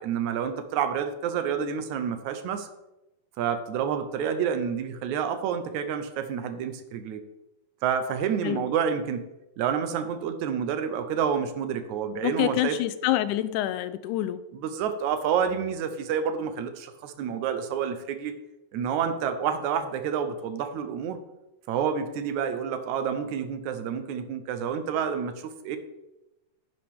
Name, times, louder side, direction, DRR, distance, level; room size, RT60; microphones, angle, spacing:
voice 1, 0.0-2.7 3.4-7.2 7.8-9.3 9.6-12.8 14.5-18.4 18.7-21.2 21.7-25.8, right 7 dB, 75° right, 9 dB, 2.1 m, -29 dB
voice 2, 12.2-14.4, left 14 dB, 85° left, 14 dB, 2.0 m, -27 dB
10.5 x 9.6 x 3.6 m, 0.96 s
omnidirectional pair, 3.5 m